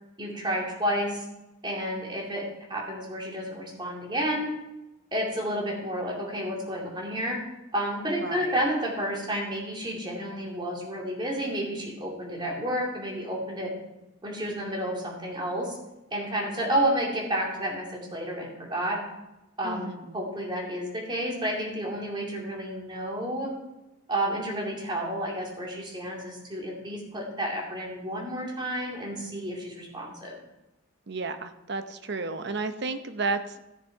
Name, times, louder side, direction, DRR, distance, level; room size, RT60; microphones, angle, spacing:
voice 1, 0.2-1.2 1.6-2.4 2.7-4.5 5.1-7.4 7.7-13.7 14.2-15.8 16.1-19.0 19.6-23.5 24.1-30.4, equal, 25° right, -2 dB, 2.6 m, -30 dB
voice 2, 8.2-8.6 19.6-20.2 31.1-33.6, right 3 dB, 55° right, 9 dB, 0.8 m, -32 dB
14.5 x 6.7 x 4.6 m, 0.97 s
head